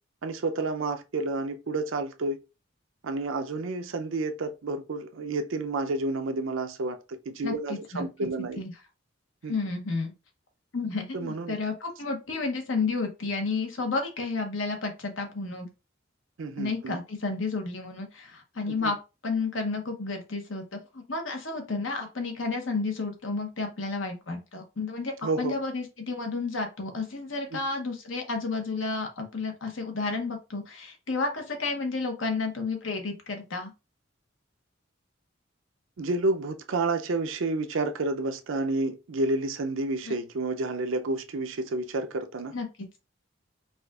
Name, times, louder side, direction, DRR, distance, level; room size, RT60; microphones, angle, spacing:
voice 1, 0.2-2.4 3.0-7.0 7.3-8.6 9.4-9.5 11.1-11.6 16.4-17.0 18.7-18.9 25.2-25.6 27.5-27.6 36.0-42.5, right 2 dB, 75° right, 0.5 m, -30 dB
voice 2, 7.4-8.1 8.6-8.7 9.5-10.1 10.7-15.7 16.6-19.0 19.2-25.1 25.4-33.7 40.1-40.2 42.5-42.7, left 3 dB, 70° left, 1.0 m, -31 dB
4.9 x 2.4 x 2.4 m
head